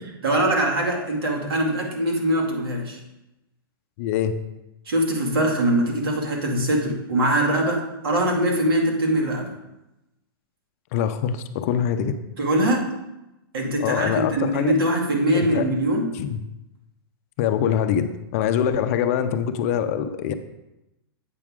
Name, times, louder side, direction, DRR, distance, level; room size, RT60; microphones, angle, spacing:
voice 1, 0.2-3.0 4.9-9.5 12.4-12.8 13.5-16.1, right 1 dB, 70° right, 0 dB, 2.3 m, -22 dB
voice 2, 4.0-4.3 10.9-12.1 13.8-14.8 15.3-15.6 16.1-16.4 17.4-20.3, left 9 dB, 40° left, 10 dB, 0.5 m, -24 dB
8.3 x 5.9 x 3.6 m, 0.94 s
hypercardioid pair, 150°, 13 cm